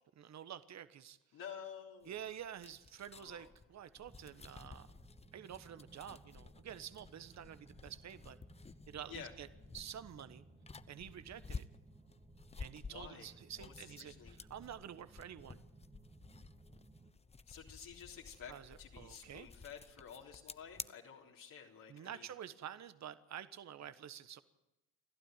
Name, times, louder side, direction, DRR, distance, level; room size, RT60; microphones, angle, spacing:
voice 1, 0.2-1.2 2.0-4.9 5.3-8.4 8.9-9.5 9.7-10.4 10.9-11.7 12.6-15.6 18.5-19.5 21.9-24.4, right 9 dB, 45° right, 13 dB, 1.4 m, -49 dB
voice 2, 1.3-2.2 3.1-3.5 9.1-9.3 12.9-13.3 13.6-14.3 17.5-18.5 18.8-22.3, left 8 dB, 60° left, -2 dB, 3.7 m, -51 dB
sound 1, 2.0-20.9, left 4 dB, 15° left, 0.8 m, -53 dB
sound 2, 4.1-17.1, right 3 dB, 15° right, 1.4 m, -61 dB
29.5 x 12.5 x 9.2 m, 0.96 s
supercardioid pair, 75°, 37 cm